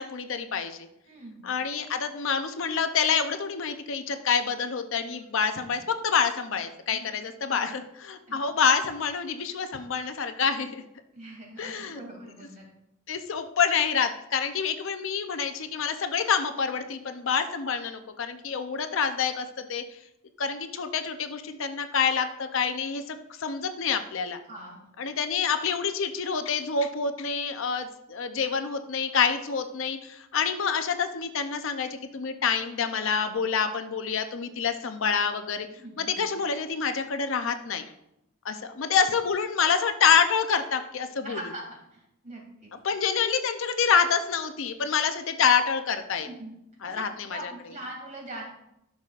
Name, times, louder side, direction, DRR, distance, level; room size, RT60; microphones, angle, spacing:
voice 1, 0.0-0.9 1.4-10.8 11.6-12.0 13.1-19.8 20.4-24.4 25.0-35.7 36.0-37.9 38.4-41.4 42.8-46.3 46.8-47.4, left 6 dB, 60° left, 8 dB, 0.6 m, -27 dB
voice 2, 1.1-1.5 6.9-7.0 7.5-7.7 8.3-8.4 11.1-12.7 24.5-24.8 35.8-36.2 41.2-42.7 46.2-46.5 46.8-48.4, right 1 dB, 35° right, -1 dB, 2.4 m, -42 dB
12.5 x 6.2 x 2.4 m, 0.83 s
head